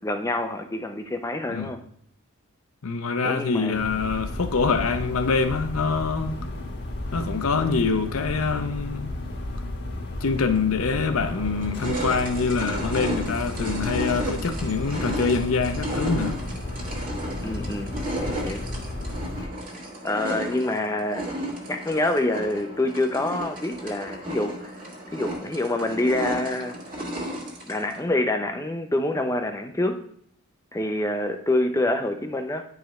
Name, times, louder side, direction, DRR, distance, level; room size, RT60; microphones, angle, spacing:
voice 1, 0.0-1.8 3.2-3.9 17.4-18.7 19.4-19.5 20.0-21.3 21.7-24.7 25.1-26.8 27.7-30.0 30.7-32.7, left 1 dB, 15° left, 0.5 m, -26 dB
voice 2, 2.8-6.4 7.1-9.1 10.2-16.4, left 4 dB, 70° left, 0.7 m, -25 dB
sound 1, 3.7-19.5, left 1 dB, 50° left, 1.1 m, -33 dB
sound 2, 10.6-10.7 11.2-28.0, equal, 35° right, 1.5 m, -34 dB
10.0 x 4.8 x 3.1 m
head